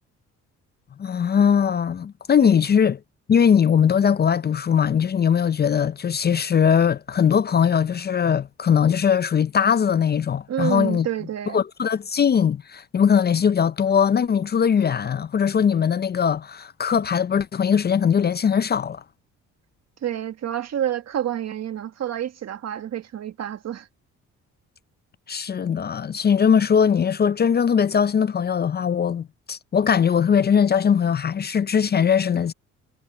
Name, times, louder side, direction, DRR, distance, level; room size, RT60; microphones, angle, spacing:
voice 1, 1.0-3.0 3.3-11.1 11.5-19.0 25.3-32.5, left 7 dB, 35° left, 0.5 m, -20 dB
voice 2, 10.5-11.6 20.0-23.9, right 10 dB, 60° right, 1.7 m, -28 dB
cardioid pair, 90°, 30 cm